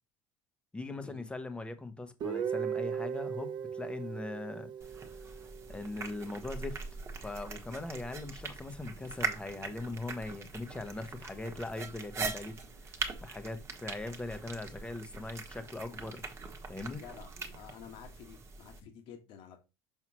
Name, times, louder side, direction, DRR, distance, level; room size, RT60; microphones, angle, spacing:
voice 1, 0.7-4.7 5.2-5.3 5.7-6.8 7.2-12.6 13.2-16.2 16.7-17.0, left 2 dB, 10° left, 1.0 m, -40 dB
Guitar, 2.2-6.0, right 8 dB, 45° right, 0.8 m, -37 dB
sound 1, 4.8-18.8, right 4 dB, 25° right, 1.3 m, -42 dB
voice 2, 16.9-19.6, left 8 dB, 55° left, 1.5 m, -51 dB
6.1 x 5.6 x 2.9 m
supercardioid pair, 120°, 10 cm